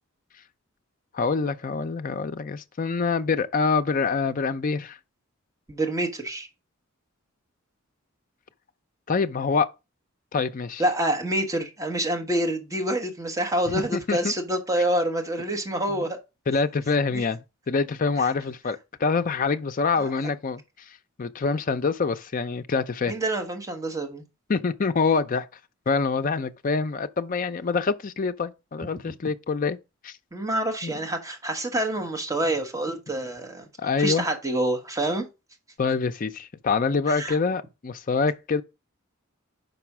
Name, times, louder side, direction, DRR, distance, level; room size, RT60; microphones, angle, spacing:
voice 1, 1.1-5.0 9.1-9.7 10.3-10.8 13.7-14.3 16.5-20.6 21.2-23.1 24.5-25.5 25.9-29.8 30.0-30.1 30.8-30.9 33.8-34.3 35.8-38.6, left 4 dB, 40° left, 0.5 m, -25 dB
voice 2, 5.7-6.5 10.8-16.2 17.1-17.2 18.2-18.3 19.9-20.1 23.1-24.2 30.3-33.7 34.0-35.3 37.1-37.4, right 1 dB, 15° right, 1.1 m, -27 dB
5.4 x 4.2 x 6.0 m
head